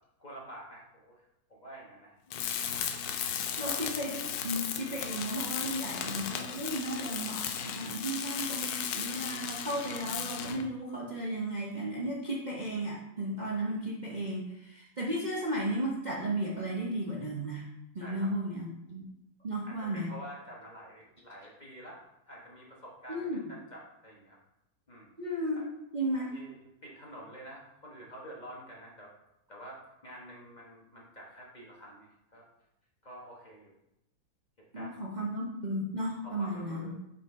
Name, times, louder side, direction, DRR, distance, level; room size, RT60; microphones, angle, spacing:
voice 1, 0.2-2.6 3.6-3.8 8.1-8.2 18.0-18.3 19.6-22.0 22.3-24.4 24.9-25.1 25.5-25.7 26.3-29.1 29.5-32.5 33.0-33.7 34.6-35.1 36.2-37.0, equal, 30° left, -3 dB, 1.0 m, -48 dB
Tools, 2.3-10.7, left 8 dB, 75° left, 0.9 m, -35 dB
voice 2, 3.6-17.7 17.9-19.0 19.4-20.1 23.1-23.4 25.2-25.7 25.9-26.3 34.7-36.9, right 1 dB, 70° right, -4 dB, 0.4 m, -34 dB
7.0 x 4.4 x 3.6 m, 0.85 s
omnidirectional pair, 2.1 m